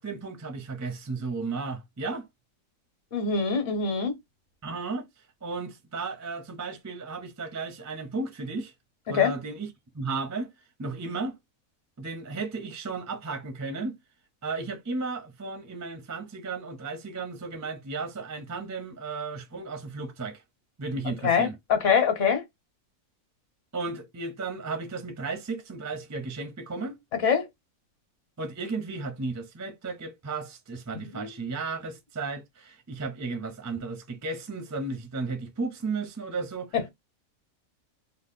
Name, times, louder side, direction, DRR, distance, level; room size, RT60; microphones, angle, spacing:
voice 1, 0.0-2.3 4.6-5.1 5.4-8.7 9.1-9.7 9.9-10.5 10.8-11.4 12.0-14.0 14.4-20.4 20.8-21.5 23.7-27.0 28.4-36.7, right 3 dB, 25° right, 0.4 m, -34 dB
voice 2, 3.1-4.2 9.1-9.3 21.2-22.4 27.2-27.5 31.1-31.3, left 6 dB, 60° left, 1.2 m, -24 dB
3.0 x 2.1 x 3.5 m
omnidirectional pair, 1.6 m